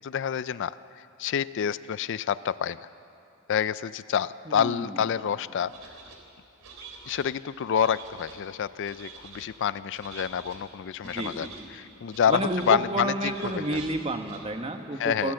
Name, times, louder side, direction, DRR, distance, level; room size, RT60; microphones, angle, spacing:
voice 1, 0.0-2.8 3.5-5.7 7.1-13.8 15.0-15.3, left 8 dB, 60° left, 17 dB, 0.4 m, -28 dB
voice 2, 4.5-4.9 11.1-11.5 12.3-15.3, right 1 dB, 30° right, 5 dB, 1.3 m, -30 dB
sound 1, 5.7-6.2 6.6-7.3 7.7-8.4 8.8-9.4 9.9-10.6 11.0-11.6 12.1-12.7 13.2-13.9 14.2-14.4, right 5 dB, 75° right, 3.4 m, -46 dB
27.5 x 14.0 x 7.7 m, 2.8 s
head